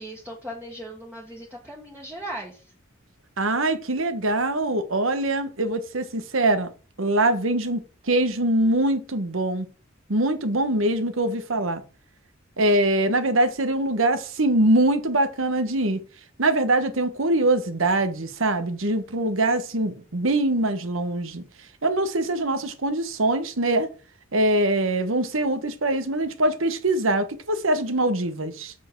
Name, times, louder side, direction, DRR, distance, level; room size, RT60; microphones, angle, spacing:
voice 1, 0.0-2.6, right 1 dB, 10° right, 1.6 m, -38 dB
voice 2, 3.4-6.7 7.0-7.8 8.1-9.7 10.1-11.8 12.6-16.0 16.4-21.4 21.8-23.9 24.3-28.7, right 1 dB, 75° right, 1.3 m, -23 dB
7.6 x 6.7 x 4.7 m
head